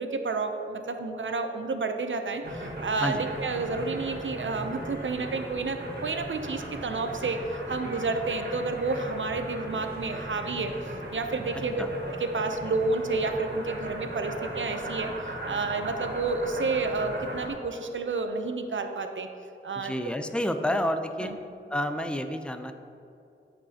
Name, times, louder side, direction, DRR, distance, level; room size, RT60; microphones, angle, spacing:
voice 1, 0.0-11.9 12.2-19.3 19.6-19.9 21.2-21.4, right 3 dB, 70° right, 6 dB, 0.7 m, -30 dB
sound 1, 2.4-17.5, right 1 dB, 55° right, 1.7 m, -38 dB
voice 2, 19.8-21.3 21.7-22.7, equal, 5° left, 7 dB, 0.6 m, -29 dB
12.5 x 5.3 x 2.9 m, 2.7 s
cardioid pair, 45°, 21 cm